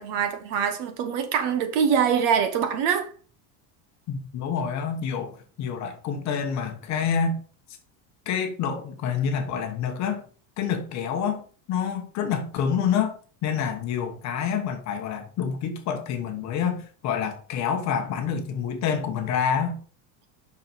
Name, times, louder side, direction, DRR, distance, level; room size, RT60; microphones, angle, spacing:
voice 1, 0.0-3.1, right 7 dB, 60° right, 1.4 m, -24 dB
voice 2, 4.1-7.4 8.3-10.3 10.6-19.8, left 7 dB, 35° left, 1.2 m, -27 dB
7.6 x 5.9 x 4.1 m
cardioid pair, 180°, 47 cm